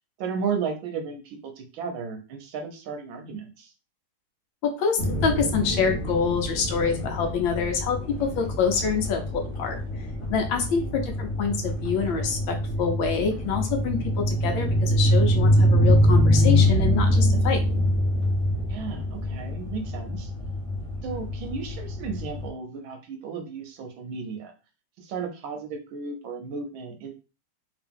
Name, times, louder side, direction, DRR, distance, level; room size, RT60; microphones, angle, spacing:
voice 1, 0.2-3.7 10.8-10.9 18.7-20.3 21.0-24.5 25.0-27.1, right 5 dB, 70° right, 5 dB, 1.3 m, -34 dB
voice 2, 4.6-9.8 10.3-14.0 14.3-17.6, left 5 dB, 70° left, 3 dB, 1.4 m, -26 dB
sound 1, 5.0-22.5, equal, 40° left, 1.1 m, -24 dB
3.5 x 2.9 x 3.4 m, 0.32 s
omnidirectional pair, 2.4 m